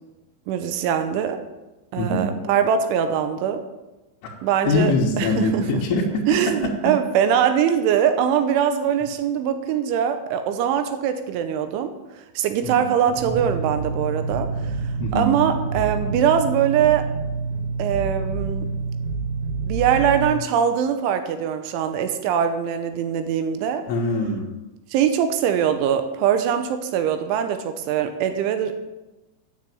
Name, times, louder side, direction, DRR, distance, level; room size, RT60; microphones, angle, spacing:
voice 1, 0.5-1.4 1.9-3.6 4.4-5.6 6.3-11.9 12.4-17.1 17.8-18.7 19.6-23.9 24.9-28.9, right 8 dB, 85° right, 9 dB, 3.1 m, -22 dB
voice 2, 2.0-2.3 4.2-4.3 4.7-6.9 12.6-12.9 15.0-15.3 23.9-24.5, left 2 dB, 75° left, -5 dB, 3.7 m, -23 dB
sound 1, 13.0-16.3, left 2 dB, 45° right, 2.0 m, -38 dB
sound 2, 13.2-20.2, right 4 dB, 65° right, 5.2 m, -28 dB
9.6 x 7.1 x 8.6 m, 1.1 s
omnidirectional pair, 5.7 m